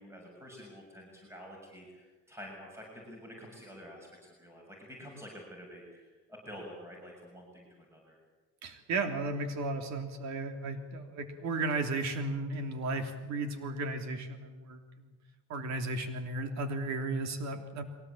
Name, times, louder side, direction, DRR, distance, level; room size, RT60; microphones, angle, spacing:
voice 1, 0.0-8.2, equal, 10° right, -1 dB, 7.2 m, -49 dB
voice 2, 8.6-15.1 15.5-17.8, right 2 dB, 65° right, 6 dB, 3.3 m, -34 dB
23.0 x 18.5 x 8.7 m, 1.3 s
supercardioid pair, 95°, 30 cm